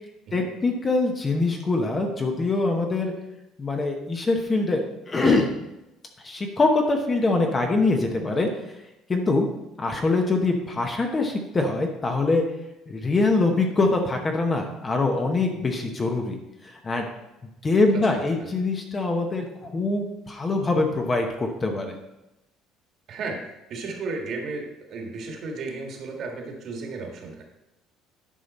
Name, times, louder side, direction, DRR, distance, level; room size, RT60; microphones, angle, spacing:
voice 1, 0.3-3.1 3.6-5.5 6.2-8.8 9.1-9.5 9.8-12.4 12.9-17.0 17.6-22.0, left 3 dB, 20° left, 3 dB, 0.9 m, -24 dB
voice 2, 23.1-27.4, right 3 dB, 45° right, 1 dB, 1.7 m, -34 dB
10.0 x 5.6 x 4.2 m, 0.93 s
cardioid pair, 160°, 0 cm